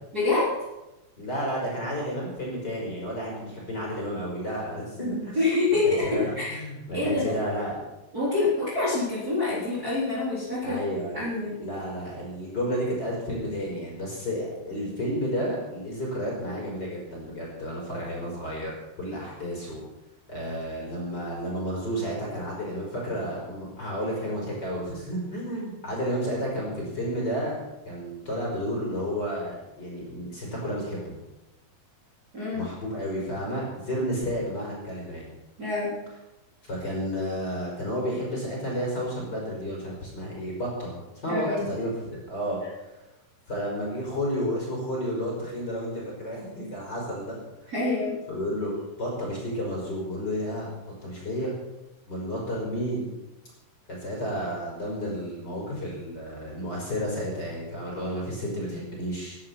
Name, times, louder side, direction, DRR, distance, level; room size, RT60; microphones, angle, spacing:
voice 1, 0.1-0.6 5.4-6.6 6.9-7.3 8.1-10.8 11.1-11.6 32.3-32.7 35.6-36.0 41.3-41.7 47.7-48.2, left 3 dB, 20° right, -7 dB, 4.2 m, -26 dB
voice 2, 1.2-5.4 5.8-7.8 10.6-11.3 11.6-19.8 20.3-27.6 27.9-31.1 32.5-35.3 36.6-40.9 41.2-42.6 43.5-47.7 48.3-48.7 49.0-50.7 51.0-51.5 52.1-53.1 53.9-59.4, equal, 25° left, -3 dB, 5.8 m, -31 dB
18.5 x 11.5 x 5.8 m, 0.99 s
omnidirectional pair, 4.8 m